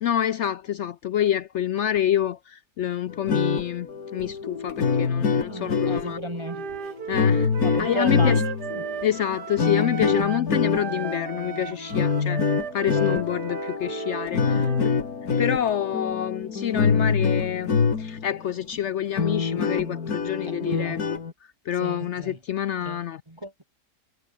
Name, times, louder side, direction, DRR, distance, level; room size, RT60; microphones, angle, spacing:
voice 1, 0.0-3.9 4.1-6.2 7.1-7.5 7.8-8.4 9.0-12.4 12.7-14.5 15.4-21.0 21.7-23.2, left 10 dB, 80° left, 0.6 m, -27 dB
sound 1, 3.1-18.3 18.7-18.8 19.1-21.3, left 5 dB, 60° left, 2.6 m, -25 dB
voice 2, 5.5-7.0 7.6-8.4 8.7-8.8 14.5-14.7 20.4-21.0 21.7-22.4 22.8-23.6, equal, 15° right, 3.2 m, -34 dB
Wind instrument woodwind instrument, 6.4-10.5 10.7-14.9, right 8 dB, 75° right, 2.0 m, -35 dB
omnidirectional pair, 1.8 m